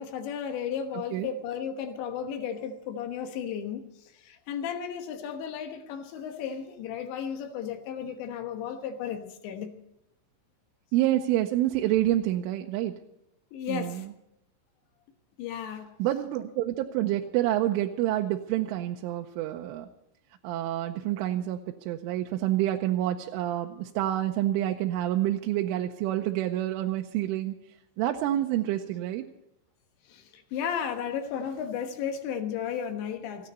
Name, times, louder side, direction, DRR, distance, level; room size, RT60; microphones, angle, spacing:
voice 1, 0.0-3.9 4.2-9.7 13.5-14.1 15.4-15.9 30.1-33.5, left 8 dB, 75° left, 3.4 m, -34 dB
voice 2, 0.9-1.3 10.9-12.9 13.7-14.1 16.0-19.9 20.4-27.6 28.0-29.3, right 13 dB, 90° right, 3.3 m, -28 dB
29.0 x 9.8 x 4.2 m
omnidirectional pair, 5.5 m